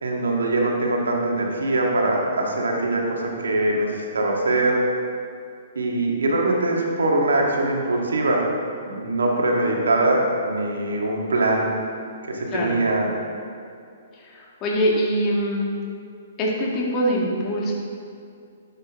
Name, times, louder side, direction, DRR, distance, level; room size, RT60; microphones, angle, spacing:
voice 1, 0.0-4.8 5.8-8.5 8.8-11.7 12.3-13.1, right 2 dB, 90° right, -1 dB, 1.9 m, -22 dB
voice 2, 14.2-15.7 16.4-17.7, equal, 30° left, -3 dB, 1.8 m, -23 dB
11.5 x 7.8 x 3.7 m, 2.4 s
hypercardioid pair, 140°, 0 cm